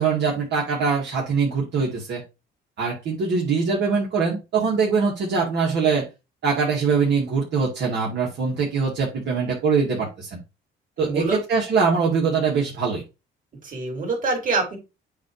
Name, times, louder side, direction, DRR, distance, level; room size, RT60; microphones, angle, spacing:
voice 1, 0.0-2.2 2.8-6.1 6.4-10.4 11.0-13.0, right 5 dB, 65° right, -4 dB, 2.4 m, -23 dB
voice 2, 11.0-11.4 13.6-14.8, right 3 dB, 45° right, 2 dB, 3.9 m, -25 dB
8.3 x 3.1 x 4.9 m, 0.26 s
cardioid pair, 100°, 19 cm